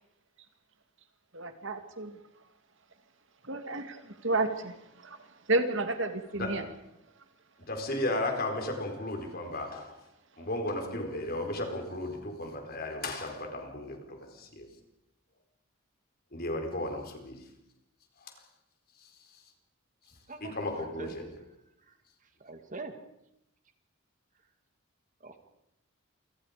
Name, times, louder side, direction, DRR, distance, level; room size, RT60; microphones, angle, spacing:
voice 1, 1.3-2.1 3.5-5.2 5.5-6.7, right 2 dB, 60° right, 7 dB, 2.4 m, -31 dB
voice 2, 6.3-6.7 7.7-10.0 10.4-14.7 16.3-17.4 18.2-18.3 19.0-19.4 20.4-21.3, left 1 dB, 45° left, 4 dB, 4.4 m, -35 dB
voice 3, 20.3-21.1 21.9-22.0 22.4-22.9 25.2-25.3, right 3 dB, 35° right, 6 dB, 2.2 m, -43 dB
28.5 x 25.5 x 5.1 m, 0.84 s
head